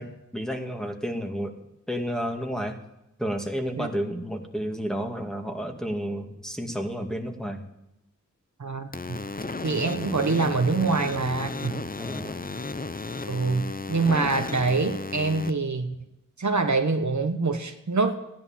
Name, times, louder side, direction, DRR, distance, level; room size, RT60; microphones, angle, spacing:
voice 1, 0.0-1.5 1.9-2.8 3.2-7.6 12.0-12.4, equal, ahead, 2 dB, 2.3 m, -31 dB
voice 2, 8.6-9.2 9.6-11.8 13.3-15.9 16.4-18.2, right 3 dB, 65° right, 6 dB, 1.3 m, -25 dB
sound 1, 8.9-15.5, left 3 dB, 30° left, 0.8 m, -34 dB
15.0 x 10.5 x 7.4 m, 0.87 s
wide cardioid pair, 50°, 32 cm